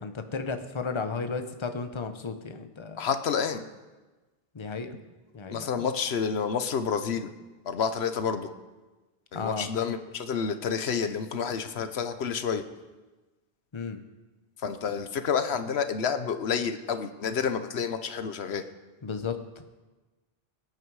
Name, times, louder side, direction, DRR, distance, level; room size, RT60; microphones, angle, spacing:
voice 1, 0.0-3.1 4.5-5.0 5.3-5.8 9.3-9.7 13.7-14.0 19.0-19.6, left 4 dB, 30° left, 7 dB, 0.9 m, -34 dB
voice 2, 3.0-3.6 5.5-7.3 7.6-8.5 9.3-12.6 14.6-18.6, left 6 dB, 85° left, 10 dB, 1.1 m, -29 dB
22.0 x 9.4 x 4.8 m, 1.2 s
omnidirectional pair, 1.0 m